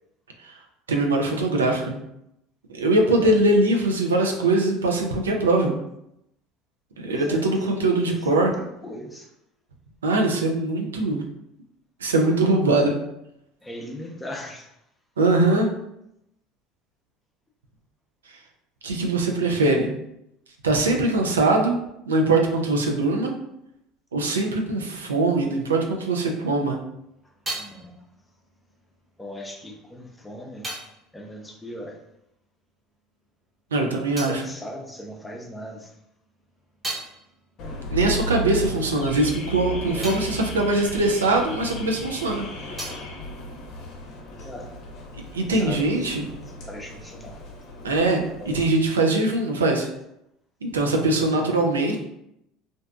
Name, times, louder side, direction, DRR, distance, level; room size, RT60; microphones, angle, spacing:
voice 1, 0.9-1.9 2.7-5.7 7.0-8.5 10.0-11.2 12.0-12.9 15.2-15.7 18.8-19.9 20.6-21.8 22.1-23.3 24.1-26.8 33.7-34.4 37.9-42.4 42.7-42.9 45.3-46.3 47.8-48.2 48.5-49.9 50.6-52.0, right 2 dB, 90° right, 2 dB, 0.3 m, -22 dB
voice 2, 3.1-3.4 6.9-7.5 8.0-9.3 13.6-14.8 27.2-28.0 29.2-30.7 31.1-32.0 34.3-35.9 39.9-40.2 44.3-44.7 45.3-46.2 46.7-47.4 48.4-48.7 51.4-51.6, left 1 dB, 10° left, 1 dB, 0.6 m, -39 dB
sound 1, 26.8-32.6 32.9-35.6 36.0-42.0 42.3-44.3, right 1 dB, 30° right, 0.8 m, -41 dB
Car / Alarm, 37.6-48.7, equal, 55° left, 0.6 m, -35 dB
2.5 x 2.2 x 2.3 m, 0.81 s
hypercardioid pair, 70°, 0 cm